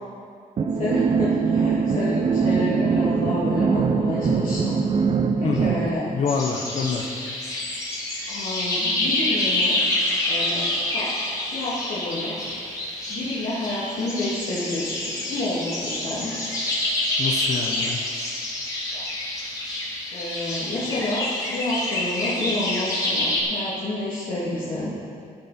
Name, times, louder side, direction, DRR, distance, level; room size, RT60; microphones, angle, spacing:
sound 1, 0.6-5.9, right 5 dB, 40° right, 0.7 m, -22 dB
voice 1, 0.7-4.8 5.4-6.1 8.3-9.8 10.3-10.6 10.9-11.1 11.5-12.4 13.1-16.3 18.9-19.0 20.1-24.9, left 1 dB, 70° left, -10 dB, 2.9 m, -29 dB
voice 2, 6.1-7.1 17.2-18.0, left 5 dB, 50° left, 2 dB, 1.0 m, -26 dB
sound 2, 6.3-23.4, left 1 dB, 25° left, 3.1 m, -27 dB
15.5 x 10.5 x 4.4 m, 2.3 s
wide cardioid pair, 150°, 15 cm